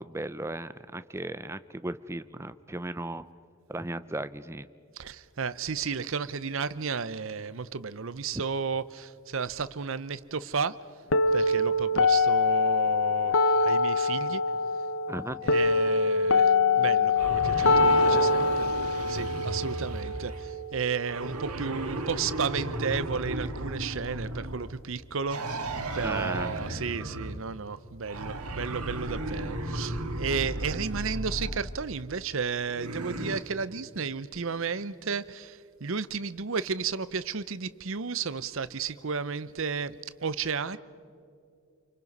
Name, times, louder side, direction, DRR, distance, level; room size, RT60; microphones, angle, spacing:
voice 1, 0.0-3.2 3.7-4.7 8.3-8.4 15.1-15.4 26.0-26.5, right 1 dB, 10° right, 0.5 m, -36 dB
voice 2, 5.0-10.8 11.3-14.4 15.4-18.7 19.1-25.6 25.9-40.8, right 5 dB, 60° right, 0.7 m, -33 dB
sound 1, 11.1-21.1, left 3 dB, 60° left, 0.8 m, -24 dB
sound 2, 17.2-20.5 21.1-24.8 25.3-27.5 28.1-31.8 32.7-33.4, right 1 dB, 85° right, 1.9 m, -35 dB
29.0 x 24.5 x 5.4 m
head